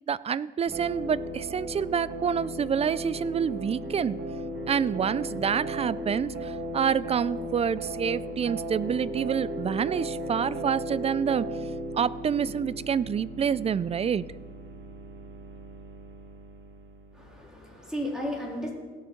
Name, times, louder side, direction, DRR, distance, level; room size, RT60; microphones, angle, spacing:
voice 1, 0.1-4.2 4.7-11.5 11.9-14.2, right 7 dB, 30° right, 19 dB, 0.3 m, -27 dB
sound 1, 0.7-17.4, right 1 dB, 65° right, 2.3 m, -36 dB
voice 2, 17.1-18.7, equal, 5° right, -3 dB, 3.6 m, -34 dB
17.5 x 6.3 x 4.6 m, 1.5 s
cardioid pair, 90°, 20 cm